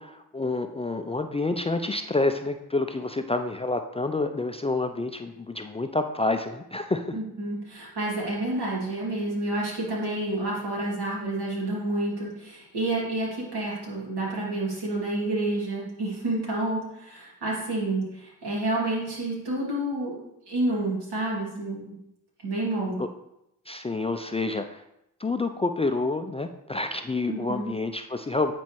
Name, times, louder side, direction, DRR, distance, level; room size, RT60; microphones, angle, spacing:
voice 1, 0.0-7.2 23.0-23.1 23.7-24.8 25.2-28.5, left 2 dB, 15° left, 7 dB, 0.4 m, -28 dB
voice 2, 7.1-21.9 22.4-23.0 27.3-27.7, right 2 dB, 75° right, -5 dB, 2.6 m, -29 dB
9.3 x 4.2 x 3.1 m, 0.84 s
supercardioid pair, 50°, 40 cm